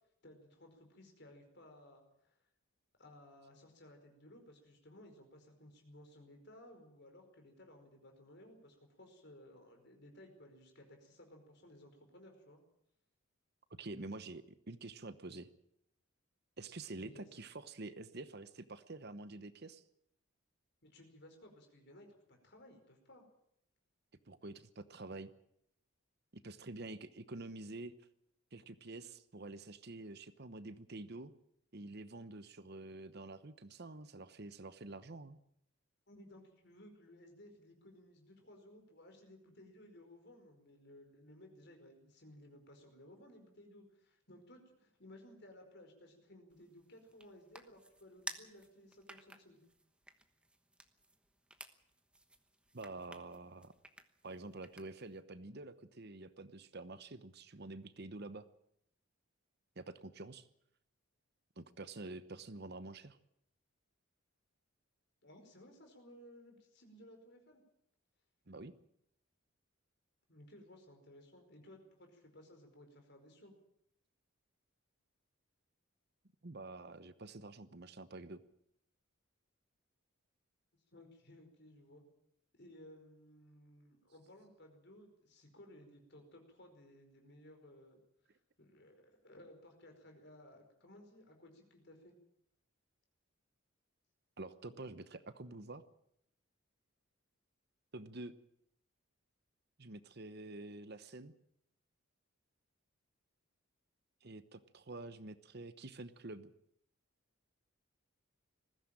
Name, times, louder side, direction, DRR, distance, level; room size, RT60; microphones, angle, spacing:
voice 1, 0.2-2.4 3.0-12.6 17.0-17.3 20.8-23.2 36.1-49.6 65.2-67.6 70.3-73.5 80.9-82.0 82.5-88.0 88.6-92.1, left 1 dB, 50° left, 4 dB, 4.9 m, -58 dB
voice 2, 13.8-15.5 16.6-19.8 24.3-25.3 26.3-27.9 28.5-31.3 31.7-35.4 52.7-53.7 54.2-58.5 59.8-60.5 61.6-63.2 68.5-68.7 76.4-78.4 94.4-95.8 97.9-98.3 99.8-101.3 104.2-106.5, right 2 dB, 50° right, 13 dB, 1.0 m, -48 dB
sound 1, 46.5-55.2, right 1 dB, 5° right, 1.1 m, -54 dB
20.0 x 15.5 x 8.9 m, 0.73 s
head